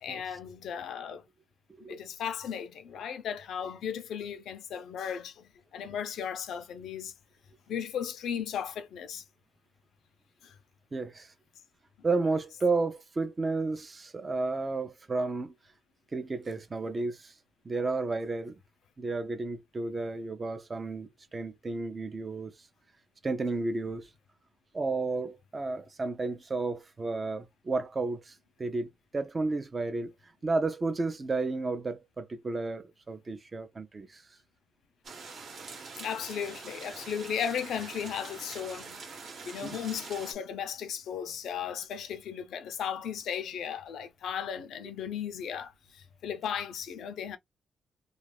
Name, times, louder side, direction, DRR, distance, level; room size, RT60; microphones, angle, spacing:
voice 1, 0.0-1.2 1.9-7.1 7.7-9.2 10.4-10.5 36.0-39.0 39.4-47.4, left 8 dB, 90° left, 0.5 m, -36 dB
voice 2, 10.9-11.3 12.0-15.5 16.1-17.3 17.6-18.5 19.0-22.5 23.2-24.1 24.7-28.3 28.6-30.1 30.4-34.2 39.6-39.8, right 3 dB, 25° right, 0.5 m, -32 dB
sound 1, 35.0-40.3, right 4 dB, 55° right, 0.9 m, -44 dB
2.4 x 2.3 x 3.3 m
wide cardioid pair, 145°, 0 cm